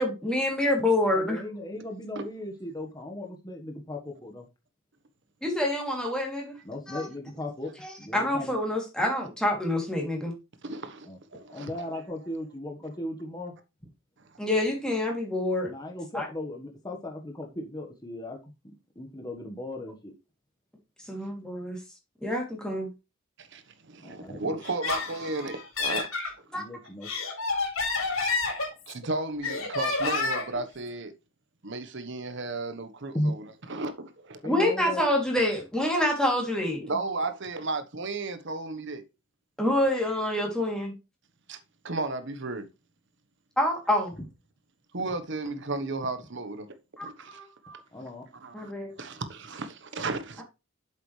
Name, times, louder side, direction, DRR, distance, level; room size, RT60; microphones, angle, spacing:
voice 1, 0.0-1.4 5.4-6.6 6.9-7.1 7.8-10.3 14.4-15.7 16.1-16.3 21.1-21.8 22.2-22.9 26.5-26.6 34.4-36.9 39.6-40.9 43.6-44.1 47.0-47.5 48.5-48.9, left 1 dB, 5° left, 2.9 m, -27 dB
voice 2, 1.1-4.5 6.6-7.7 8.0-8.5 11.0-11.2 11.5-13.5 15.7-18.4 18.9-20.1 24.0-24.6 26.5-27.1 33.1-33.3 34.4-35.0 47.9-48.2, left 1 dB, 20° left, 1.4 m, -36 dB
voice 3, 10.6-11.9 23.4-26.1 28.9-31.1 31.6-34.4 36.8-39.0 41.5-41.6 41.8-42.6 44.9-46.7 47.0-47.8 48.4-48.7 49.0-50.4, right 3 dB, 60° right, 1.2 m, -34 dB
Laughter, 24.6-26.3 26.8-29.0 29.4-30.6, left 3 dB, 80° left, 4.6 m, -29 dB
8.1 x 7.4 x 3.3 m
head